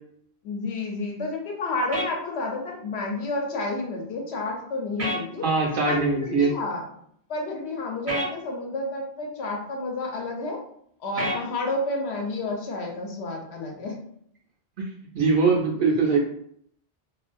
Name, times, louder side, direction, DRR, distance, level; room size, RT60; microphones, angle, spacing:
voice 1, 0.4-5.5 5.9-6.9 7.3-10.6 11.0-14.0, left 2 dB, 75° left, 0 dB, 0.9 m, -30 dB
sound 1, 1.9-2.1 5.0-5.2 8.1-8.3 11.2-11.4, equal, 20° right, 0.5 m, -28 dB
voice 2, 5.4-6.5 14.8-14.9 15.1-16.2, right 4 dB, 60° right, -2 dB, 0.7 m, -22 dB
2.4 x 2.2 x 2.5 m, 0.67 s
omnidirectional pair, 1.1 m